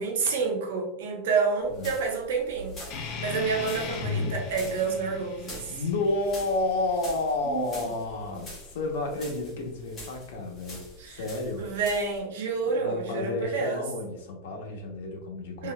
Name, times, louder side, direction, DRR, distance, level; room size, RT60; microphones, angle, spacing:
voice 1, 0.0-2.8 3.2-5.8 7.4-7.6 8.3-8.4 11.0-11.2 11.6-13.8 15.6-15.7, right 5 dB, 85° right, 2 dB, 0.9 m, -29 dB
sound 1, 1.6-12.2, left 1 dB, 15° left, 1.0 m, -46 dB
sound 2, 2.9-7.9, left 4 dB, 35° left, 0.5 m, -36 dB
voice 2, 5.7-11.7 12.8-15.7, left 2 dB, 80° left, 1 dB, 1.0 m, -31 dB
3.8 x 3.2 x 2.4 m, 0.83 s
supercardioid pair, 180°, 0 cm